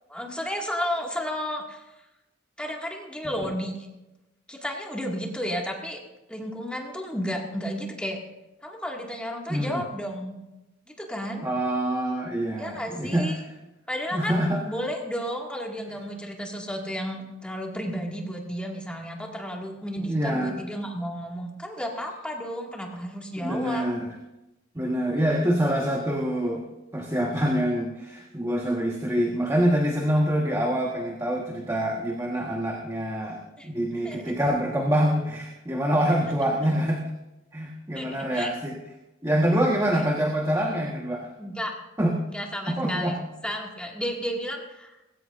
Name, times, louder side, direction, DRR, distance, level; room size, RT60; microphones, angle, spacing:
voice 1, 0.1-1.8 2.6-3.9 4.5-6.0 6.3-8.2 8.6-10.4 11.0-11.5 12.6-13.4 13.9-23.9 24.8-25.2 33.6-33.7 34.0-34.3 37.9-38.5 41.4-41.7 42.3-45.0, equal, 5° left, -1 dB, 2.1 m, -32 dB
voice 2, 9.5-9.8 11.4-13.3 14.1-14.6 20.0-20.6 23.4-24.1 24.7-26.7 26.9-37.0 37.5-38.7 39.2-41.3 42.0-42.1 42.7-43.2, equal, 15° right, -1 dB, 1.4 m, -25 dB
20.0 x 16.5 x 2.6 m, 1.0 s
head